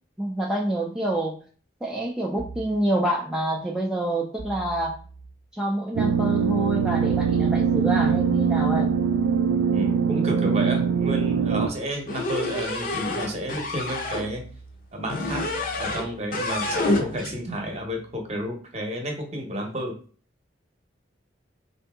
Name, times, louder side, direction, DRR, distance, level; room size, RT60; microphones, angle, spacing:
voice 1, 0.2-1.4 1.8-4.9 5.5-8.9, right 1 dB, 5° right, -2 dB, 0.4 m, -27 dB
sound 1, 2.4-2.8 4.4-5.3 7.1-18.5, right 3 dB, 70° left, 0.9 m, -45 dB
sound 2, 6.0-11.7, right 6 dB, 80° right, 0.3 m, -22 dB
voice 2, 9.7-14.4 14.9-15.4 15.8-19.9, equal, 35° right, 3 dB, 0.8 m, -31 dB
sound 3, 12.1-14.3 15.1-16.1 16.3-17.3, left 2 dB, 45° left, 0.6 m, -28 dB
3.7 x 2.6 x 3.5 m, 0.42 s
head